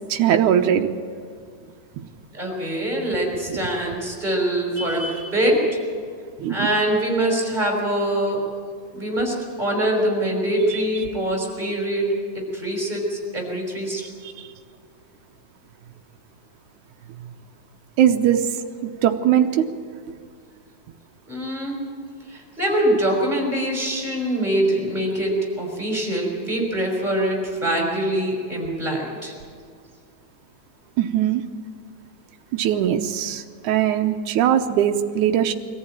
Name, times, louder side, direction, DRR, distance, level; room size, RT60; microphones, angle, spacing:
voice 1, 0.1-0.9 3.5-3.6 6.4-6.7 18.0-18.5 18.8-19.7 31.0-31.4 32.5-35.5, right 10 dB, 80° right, 5 dB, 2.4 m, -20 dB
voice 2, 2.3-5.6 6.5-8.4 8.9-12.1 12.3-14.0 21.3-21.8 22.3-29.3, right 1 dB, 15° right, -1 dB, 5.4 m, -24 dB
23.5 x 14.5 x 8.9 m, 2.1 s
omnidirectional pair, 3.5 m